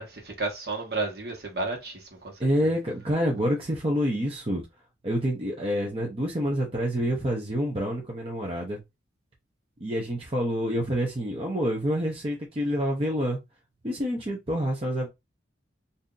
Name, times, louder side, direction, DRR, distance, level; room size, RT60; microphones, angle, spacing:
voice 1, 0.0-2.7, right 3 dB, 55° right, 1.3 m, -33 dB
voice 2, 2.4-4.6 5.0-8.8 9.8-13.4 13.8-15.1, equal, 30° right, 0.8 m, -27 dB
2.8 x 2.7 x 3.8 m
head